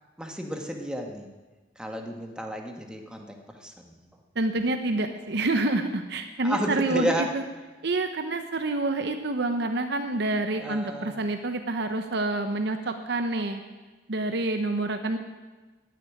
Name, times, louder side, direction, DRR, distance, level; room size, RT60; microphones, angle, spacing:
voice 1, 0.2-1.3 1.8-4.0 6.4-7.3 10.6-11.2, equal, 5° right, 2 dB, 1.4 m, -32 dB
voice 2, 4.4-7.4 7.8-13.6 14.1-15.2, right 2 dB, 65° right, 6 dB, 0.8 m, -27 dB
10.0 x 9.3 x 9.9 m, 1.2 s
head